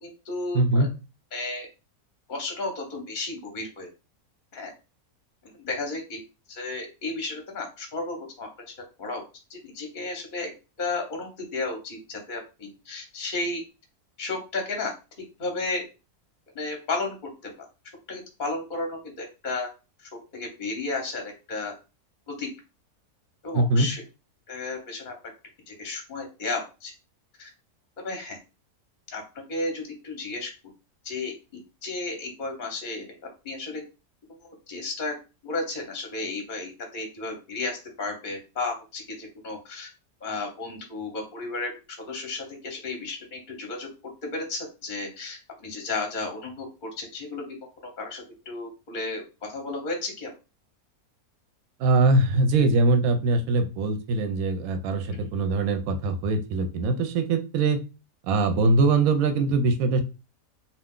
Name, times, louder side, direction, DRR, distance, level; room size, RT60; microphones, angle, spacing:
voice 1, 0.0-0.9 1.3-1.7 2.3-3.9 4.5-4.7 5.6-6.2 6.5-9.2 9.5-10.5 10.8-13.6 14.2-14.9 15.4-15.8 16.5-17.1 17.4-17.5 18.1-19.7 20.0-21.7 22.3-22.5 23.4-24.0 24.5-25.1 25.7-26.9 27.4-27.5 28.0-28.4 29.1-29.2 29.5-30.5 31.0-31.3 31.8-33.0 33.4-33.8 34.7-35.1 35.4-39.9 40.2-41.7 42.1-43.9 44.2-47.4 48.0-49.2 49.5-50.3, left 3 dB, 45° left, 2 dB, 0.7 m, -33 dB
voice 2, 0.5-0.9 23.5-23.9 51.8-57.8 58.3-60.0, right 3 dB, 70° right, 7 dB, 0.9 m, -22 dB
2.6 x 2.3 x 3.6 m, 0.30 s
omnidirectional pair, 1.6 m